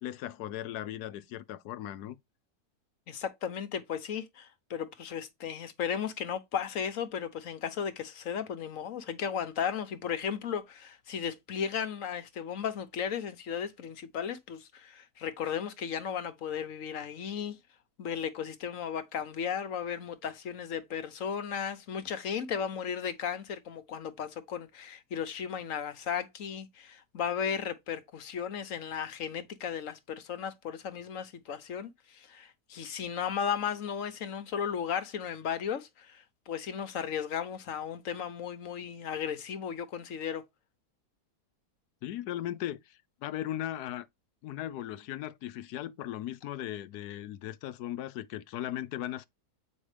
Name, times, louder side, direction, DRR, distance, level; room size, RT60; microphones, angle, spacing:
voice 1, 0.0-2.2 42.0-44.1 44.4-49.3, left 12 dB, 80° left, 1.2 m, -37 dB
voice 2, 3.1-17.6 18.0-40.4, left 7 dB, 60° left, 1.3 m, -35 dB
8.6 x 5.2 x 3.3 m
omnidirectional pair, 1.7 m